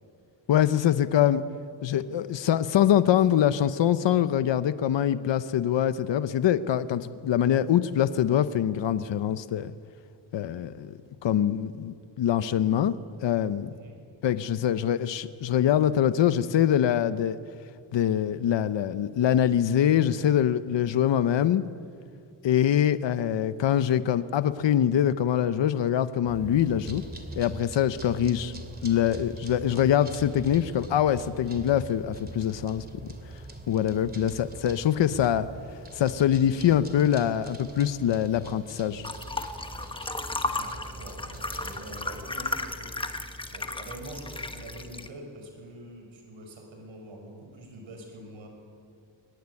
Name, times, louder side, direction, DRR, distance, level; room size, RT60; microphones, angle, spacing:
voice 1, 0.5-1.4 1.8-9.7 10.3-10.9 11.2-12.9 13.2-13.7 14.2-17.4 17.9-21.6 22.4-27.0 27.3-28.5 28.8-32.8 33.7-35.5 35.9-39.0, left 10 dB, 65° left, 13 dB, 0.9 m, -24 dB
sound 1, 26.3-42.3, right 1 dB, 20° right, 2.6 m, -43 dB
sound 2, 39.0-45.1, left 2 dB, 10° left, 1.1 m, -34 dB
voice 2, 40.4-48.5, right 1 dB, 75° right, 3 dB, 6.2 m, -45 dB
23.0 x 20.5 x 9.8 m, 2.3 s
wide cardioid pair, 160°, 47 cm